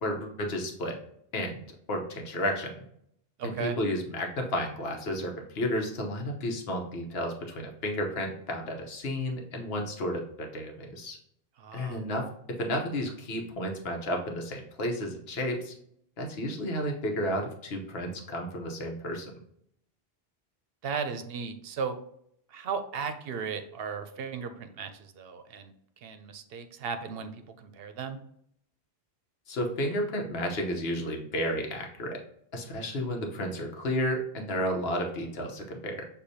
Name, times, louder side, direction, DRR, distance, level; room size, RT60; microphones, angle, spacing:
voice 1, 0.0-0.9 1.3-2.7 3.4-11.2 11.7-12.2 12.6-15.7 16.2-19.3 29.5-32.2 32.5-36.0, equal, 75° left, 2 dB, 1.1 m, -32 dB
voice 2, 3.4-3.7 11.6-12.0 20.8-21.9 22.5-25.7 26.0-27.3 27.6-28.2, right 6 dB, 70° right, 8 dB, 0.7 m, -35 dB
6.5 x 2.6 x 2.7 m, 0.71 s
omnidirectional pair, 1.0 m